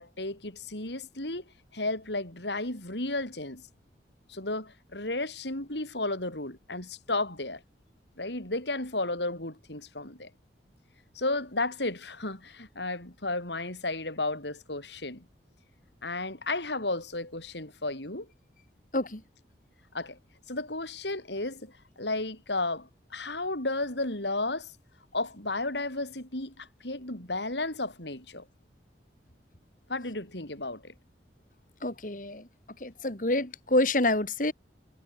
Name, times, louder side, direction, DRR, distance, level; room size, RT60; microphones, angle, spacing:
voice 1, 0.0-1.4 1.7-3.7 4.3-7.6 8.2-10.3 11.1-15.3 16.0-18.3 19.9-20.2 20.5-24.7 25.1-28.4 29.9-30.9, left 2 dB, 75° left, 6.8 m, -33 dB
voice 2, 31.8-32.5 32.8-34.5, left 2 dB, 45° left, 2.4 m, -27 dB
head